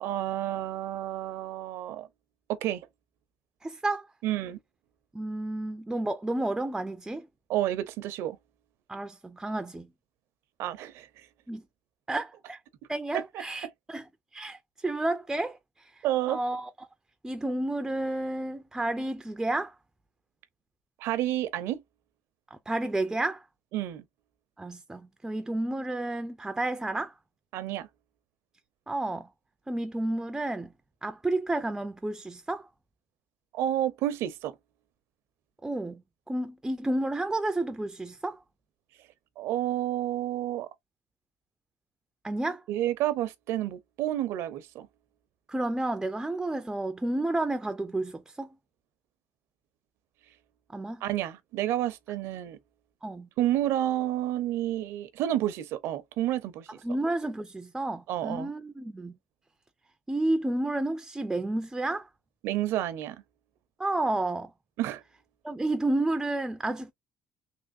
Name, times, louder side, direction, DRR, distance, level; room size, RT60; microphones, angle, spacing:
voice 1, 0.0-2.1 2.5-2.8 4.2-4.6 7.5-8.4 10.6-11.3 13.1-13.2 16.0-16.4 21.0-21.8 23.7-24.0 27.5-27.9 33.5-34.5 39.4-40.7 42.7-44.9 51.0-52.6 53.4-56.7 58.1-58.5 62.4-63.2 64.8-65.0, right 13 dB, 75° right, 0.6 m, -30 dB
voice 2, 3.6-4.1 5.1-7.3 8.9-9.9 11.5-11.6 12.1-12.6 12.9-14.1 14.3-16.9 17.2-19.8 22.5-23.5 24.6-27.1 28.9-29.3 29.7-30.7 31.0-32.7 35.6-38.4 42.2-42.6 45.5-48.5 50.7-51.0 53.0-53.3 56.8-59.2 60.1-62.1 63.8-64.5 65.4-66.9, right 2 dB, 10° right, 0.3 m, -31 dB
3.3 x 2.9 x 2.6 m
cardioid pair, 125°, 4 cm